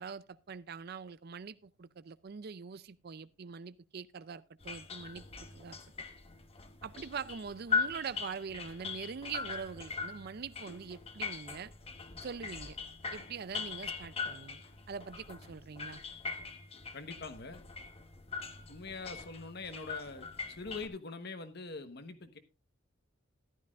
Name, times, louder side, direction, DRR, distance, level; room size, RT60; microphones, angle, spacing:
voice 1, 0.0-5.3 5.5-5.8 6.8-11.7 12.2-12.8 13.1-14.6 14.9-16.0, right 6 dB, 50° right, 0.5 m, -43 dB
sound 1, 4.6-20.9, left 5 dB, 30° left, 1.0 m, -41 dB
voice 2, 16.9-17.6 18.7-22.4, left 3 dB, 55° left, 1.2 m, -43 dB
14.0 x 12.0 x 2.5 m
head